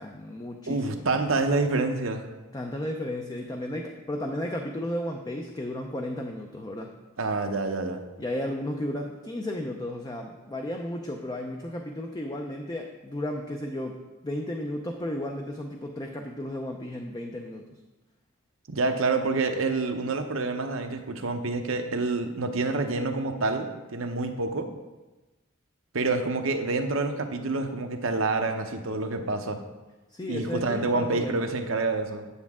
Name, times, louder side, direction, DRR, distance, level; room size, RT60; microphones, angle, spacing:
voice 1, 0.0-1.0 2.5-6.9 8.2-14.0 14.2-17.6 30.1-31.5, left 1 dB, 20° left, 2 dB, 0.5 m, -34 dB
voice 2, 0.7-2.3 7.2-8.0 18.7-24.7 25.9-29.6 30.3-32.3, right 3 dB, 70° right, 6 dB, 0.8 m, -27 dB
9.8 x 7.0 x 3.6 m, 1.1 s
head